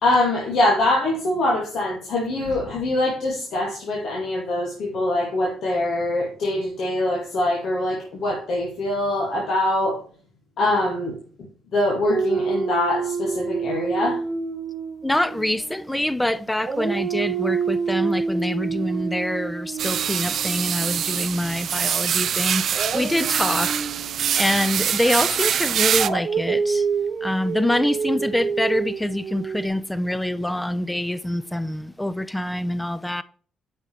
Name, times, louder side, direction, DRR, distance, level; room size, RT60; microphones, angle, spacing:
voice 1, 0.0-10.0 10.6-11.2 11.7-14.2, left 1 dB, 70° left, 2.4 m, -23 dB
Dog, 12.0-16.2 16.6-21.6 22.7-29.7, right 5 dB, 50° right, 1.0 m, -28 dB
voice 2, 15.0-23.9 24.3-26.9 27.2-33.2, left 1 dB, 10° left, 0.6 m, -25 dB
sound 1, 19.8-26.1, right 9 dB, 65° right, 0.3 m, -24 dB
8.8 x 5.6 x 3.4 m
cardioid pair, 90°, 0 cm